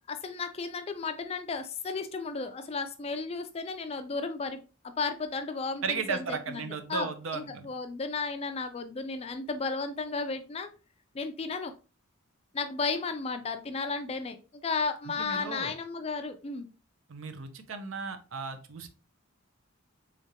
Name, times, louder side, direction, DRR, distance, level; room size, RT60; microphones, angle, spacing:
voice 1, 0.1-7.1 7.3-10.7 11.1-11.7 12.5-14.4 14.6-16.7, left 4 dB, 30° left, 8 dB, 0.3 m, -34 dB
voice 2, 5.8-7.7 15.1-15.7 17.1-18.9, right 5 dB, 65° right, 9 dB, 0.6 m, -35 dB
3.7 x 3.3 x 2.8 m, 0.33 s
head